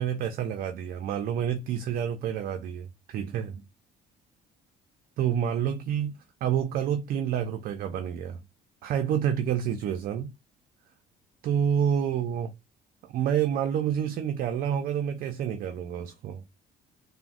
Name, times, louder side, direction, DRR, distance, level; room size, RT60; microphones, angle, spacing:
voice 1, 0.0-3.6 5.2-8.4 8.8-10.3 11.4-12.5 13.0-16.4, right 9 dB, 60° right, 0.4 m, -28 dB
3.5 x 2.0 x 2.4 m
cardioid pair, 110°, 17 cm